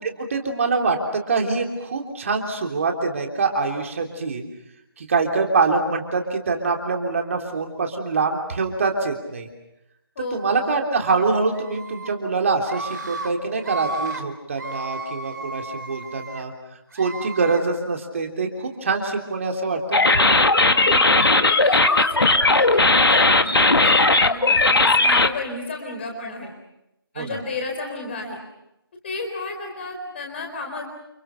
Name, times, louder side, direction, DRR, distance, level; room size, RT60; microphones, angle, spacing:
voice 1, 0.0-4.4 5.0-9.5 10.3-16.5 17.0-20.4 27.1-27.4, right 4 dB, 35° right, 2 dB, 3.4 m, -24 dB
Screaming, 11.5-12.1 12.6-13.3 13.6-14.2 14.5-16.4 16.9-17.6, right 3 dB, 50° right, 3.1 m, -33 dB
sound 1, 19.9-25.3, left 2 dB, 70° left, 1.7 m, -17 dB
voice 2, 20.7-26.5 27.1-28.4 29.0-30.8, left 3 dB, 25° left, 2 dB, 4.2 m, -33 dB
30.0 x 29.0 x 5.8 m, 0.88 s
figure-of-eight pair, 155°, 13 cm